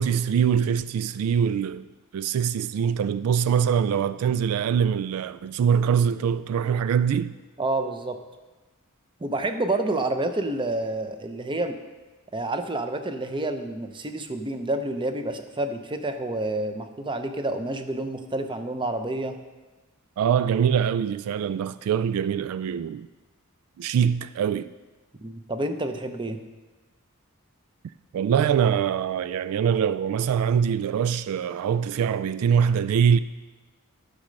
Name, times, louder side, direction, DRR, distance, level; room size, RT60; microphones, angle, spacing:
voice 1, 0.0-1.9 2.1-7.3 20.2-23.1 23.8-24.7 28.1-33.2, right 7 dB, 80° right, 0.3 m, -23 dB
voice 2, 7.6-8.2 9.2-11.8 12.3-19.4 25.2-26.4, right 2 dB, 20° right, 0.6 m, -29 dB
11.5 x 6.5 x 5.2 m
head